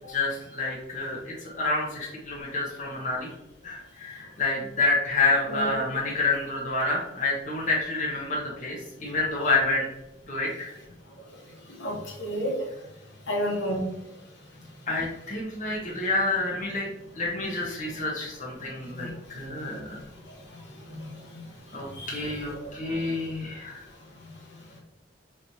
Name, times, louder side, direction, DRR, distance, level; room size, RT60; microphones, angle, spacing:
voice 1, 0.0-3.3 3.6-9.9 10.3-10.7 14.9-16.9 17.1-20.0 21.7-23.8, left 3 dB, 40° left, -4 dB, 0.9 m, -28 dB
voice 2, 11.8-12.5 13.3-13.8 19.0-19.1 20.8-21.1 22.0-22.2, equal, 75° left, -3 dB, 1.3 m, -30 dB
5.0 x 3.0 x 2.7 m, 0.88 s
head